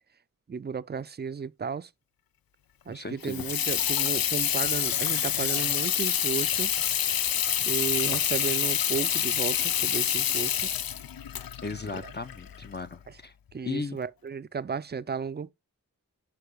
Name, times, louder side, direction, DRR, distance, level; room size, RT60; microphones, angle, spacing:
voice 1, 0.5-1.9 2.9-6.7 7.7-10.7 11.9-12.1 13.1-13.2 13.5-15.5, right 6 dB, 30° right, 0.4 m, -34 dB
voice 2, 2.9-3.5 11.6-13.3 13.6-14.0, left 3 dB, 30° left, 0.6 m, -36 dB
Water tap faucet / Sink (filling or washing), 3.2-12.8, left 9 dB, 85° left, 0.5 m, -27 dB
6.8 x 5.2 x 3.5 m
wide cardioid pair, 50°, 34 cm